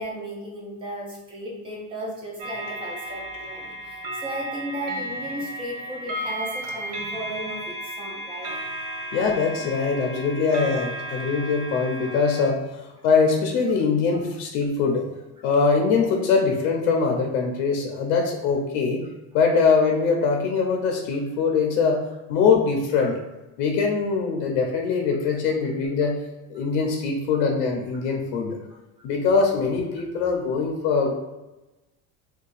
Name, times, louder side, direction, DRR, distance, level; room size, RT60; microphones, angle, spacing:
voice 1, 0.0-8.5 23.0-23.1, right 1 dB, 15° right, -2 dB, 0.4 m, -35 dB
sound 1, 2.4-12.5, right 1 dB, 85° right, 0.7 m, -34 dB
voice 2, 9.1-12.6 13.0-15.0 15.4-19.0 19.3-22.0 22.3-23.1 23.6-26.2 26.5-28.6 29.0-31.1, left 5 dB, 70° left, 1 dB, 0.6 m, -22 dB
2.7 x 2.3 x 3.9 m, 1.0 s
cardioid pair, 175°, 34 cm